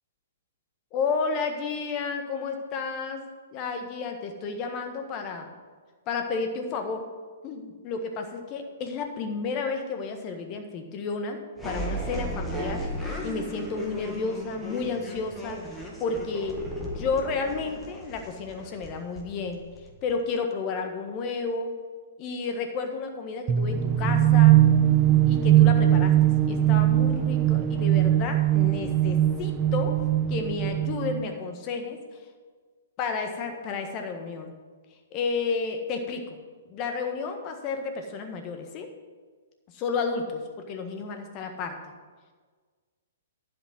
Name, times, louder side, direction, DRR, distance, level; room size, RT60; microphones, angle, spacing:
voice 1, 0.9-3.2 3.5-5.5 6.1-7.0 7.4-11.4 11.6-12.9 13.2-15.6 16.0-19.6 20.0-21.7 22.2-24.6 25.3-29.9 30.3-32.0 33.0-34.5 35.1-36.4 36.7-38.9 39.7-40.4 40.7-41.7, left 4 dB, 35° left, 5 dB, 1.5 m, -31 dB
sound 1, 11.6-20.2, equal, 5° left, 1.6 m, -35 dB
sound 2, 23.5-31.2, right 12 dB, 25° right, 0.6 m, -21 dB
11.5 x 5.2 x 7.9 m, 1.5 s
figure-of-eight pair, 120°, 0 cm